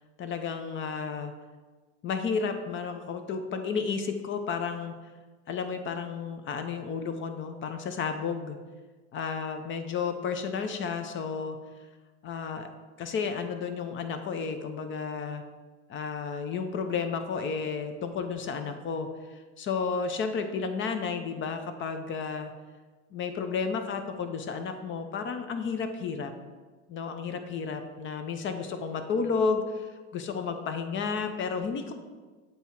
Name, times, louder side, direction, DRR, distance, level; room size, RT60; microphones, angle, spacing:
voice 1, 0.2-1.3 2.0-4.9 5.5-8.6 9.1-11.6 12.2-12.7 13.0-15.4 15.9-22.5 23.1-26.3 26.9-31.9, left 5 dB, 35° left, 8 dB, 0.7 m, -32 dB
7.8 x 2.9 x 4.6 m, 1.4 s
hypercardioid pair, 100°, 36 cm